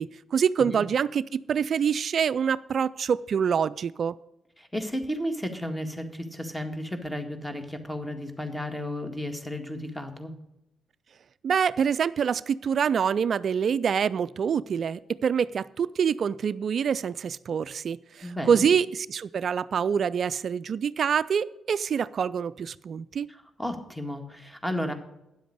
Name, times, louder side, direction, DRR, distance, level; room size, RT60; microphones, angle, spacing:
voice 1, 0.0-4.2 11.4-23.3, right 7 dB, 60° right, 18 dB, 0.3 m, -26 dB
voice 2, 4.6-10.3 18.2-18.7 23.3-24.9, left 1 dB, 10° left, 6 dB, 1.8 m, -33 dB
9.8 x 7.7 x 6.5 m, 0.88 s
hypercardioid pair, 50°, 0 cm